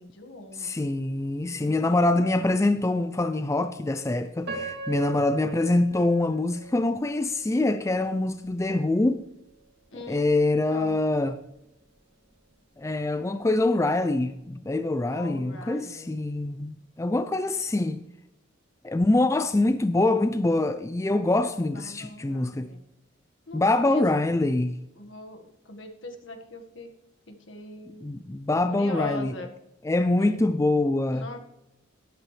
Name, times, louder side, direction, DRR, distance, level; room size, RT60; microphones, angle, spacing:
voice 1, 0.0-0.7 1.6-1.9 9.9-10.3 10.7-11.0 15.1-16.1 17.0-17.1 21.9-22.8 23.5-23.6 23.9-24.0 25.0-25.4 25.7-26.9 27.5-28.0 28.7-29.5 30.2-30.4 31.1-31.4, left 2 dB, 75° left, 1.7 m, -40 dB
voice 2, 0.5-9.2 9.9-11.4 12.8-18.0 18.8-22.7 23.5-24.8 28.0-29.4 29.8-31.3, left 2 dB, 15° left, 0.4 m, -24 dB
Piano, 4.4-7.5 8.0-8.1 8.8-9.0, right 4 dB, 55° right, 2.7 m, -38 dB
13.0 x 11.0 x 3.3 m
head